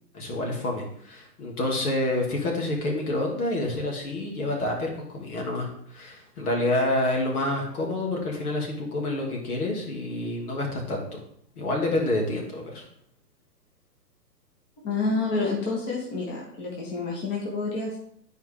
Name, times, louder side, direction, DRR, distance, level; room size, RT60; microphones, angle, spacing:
voice 1, 0.1-11.2 11.6-12.8, left 1 dB, 60° left, 0 dB, 2.5 m, -28 dB
voice 2, 14.8-18.0, left 3 dB, 20° left, -3 dB, 1.6 m, -28 dB
9.2 x 4.7 x 3.7 m, 0.67 s
hypercardioid pair, 135°, 50 cm